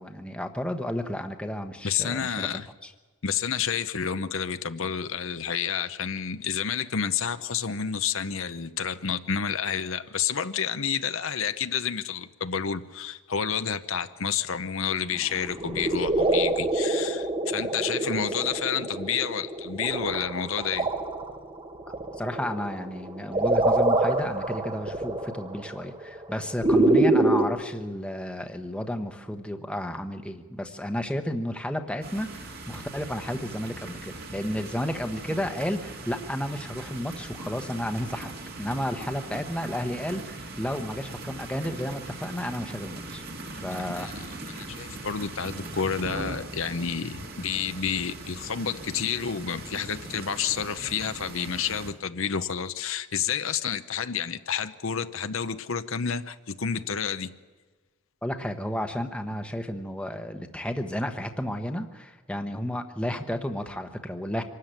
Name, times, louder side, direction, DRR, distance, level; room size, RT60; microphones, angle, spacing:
voice 1, 0.0-2.5 2.8-2.9 18.1-18.2 22.2-38.3 38.6-43.2 43.5-44.1 58.2-64.4, equal, 5° left, 6 dB, 1.0 m, -32 dB
voice 2, 1.8-2.7 3.2-20.9 43.7-44.1 44.5-57.3, left 7 dB, 65° left, 10 dB, 0.8 m, -30 dB
sound 1, 15.4-27.4, right 2 dB, 25° right, 1.1 m, -26 dB
sound 2, 32.0-51.9, right 2 dB, 45° right, 2.1 m, -40 dB
25.0 x 13.0 x 9.1 m, 1.3 s
head